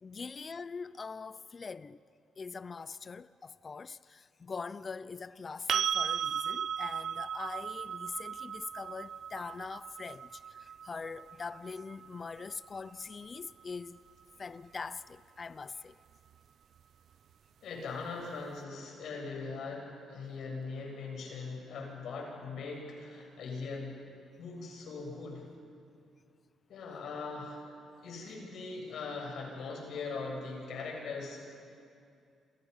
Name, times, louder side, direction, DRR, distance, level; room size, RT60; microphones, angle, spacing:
voice 1, 0.0-2.0 2.4-14.0 14.4-16.0, left 4 dB, 35° left, 0.6 m, -43 dB
sound 1, 5.7-13.5 16.3-16.4, right 8 dB, 65° right, 0.6 m, -36 dB
voice 2, 17.6-24.0 24.4-25.4 26.7-27.7 28.0-31.4, left 4 dB, 70° left, 7.9 m, -40 dB
29.5 x 28.0 x 5.6 m
cardioid pair, 90°, 0 cm